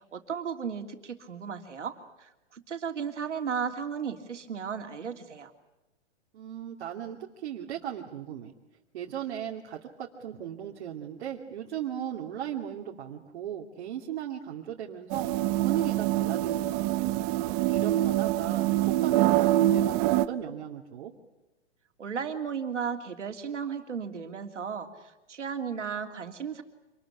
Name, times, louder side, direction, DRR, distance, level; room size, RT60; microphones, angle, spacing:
voice 1, 0.1-5.5 22.0-26.6, right 6 dB, 85° right, 6 dB, 3.1 m, -35 dB
voice 2, 6.3-8.5 8.9-16.6 17.0-18.7 19.0-21.1, right 10 dB, 55° right, -1 dB, 2.7 m, -37 dB
sound 1, 15.1-20.3, right 14 dB, 35° right, 1.0 m, -25 dB
26.5 x 20.5 x 9.9 m, 1.0 s
hypercardioid pair, 130°, 35 cm